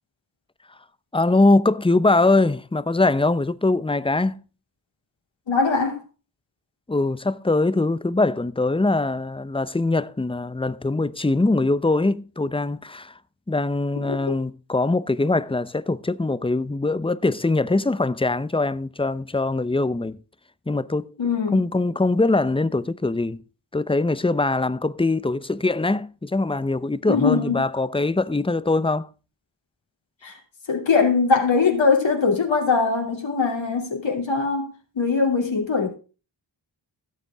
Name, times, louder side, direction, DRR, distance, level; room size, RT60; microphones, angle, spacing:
voice 1, 1.1-4.4 6.9-13.1 13.5-20.2 20.7-21.1 21.5-23.4 23.7-29.1, left 2 dB, 10° left, 0.7 m, -22 dB
voice 2, 5.5-6.0 14.1-14.4 21.2-21.6 27.1-27.6 30.2-30.4 30.7-35.9, left 4 dB, 75° left, 2.8 m, -21 dB
16.5 x 6.8 x 3.5 m
wide cardioid pair, 65°, 45 cm